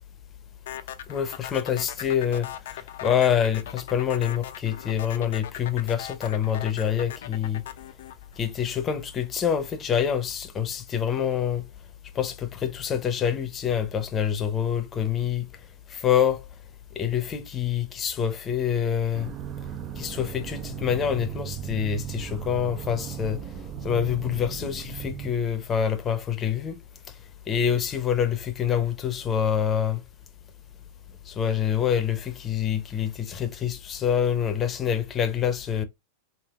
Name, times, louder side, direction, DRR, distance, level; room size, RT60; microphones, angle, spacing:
sound 1, 0.7-9.0, left 11 dB, 70° left, 0.3 m, -39 dB
voice 1, 1.1-2.5 3.0-7.6 8.4-11.6 12.1-15.4 15.9-16.4 17.0-19.3 20.0-23.4 23.8-26.8 27.5-30.0 31.3-35.8, left 8 dB, 25° left, 0.6 m, -26 dB
sound 2, 19.1-25.3, right 10 dB, 40° right, 0.3 m, -36 dB
3.4 x 2.5 x 2.3 m
hypercardioid pair, 105°, 0 cm